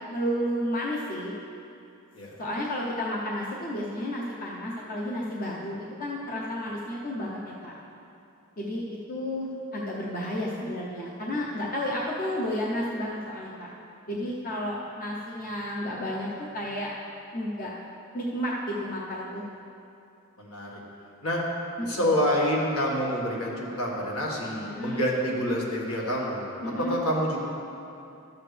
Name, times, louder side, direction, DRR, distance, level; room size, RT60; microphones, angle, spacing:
voice 1, 0.1-1.3 2.4-7.7 8.6-13.7 14.1-16.9 17.3-17.7 18.1-19.4 21.8-22.1 24.7-25.1 26.6-27.0, equal, 40° left, -4 dB, 0.8 m, -32 dB
voice 2, 20.4-20.8 21.2-21.4 21.9-27.4, equal, 75° left, -3 dB, 1.6 m, -27 dB
12.5 x 7.3 x 3.4 m, 2.6 s
head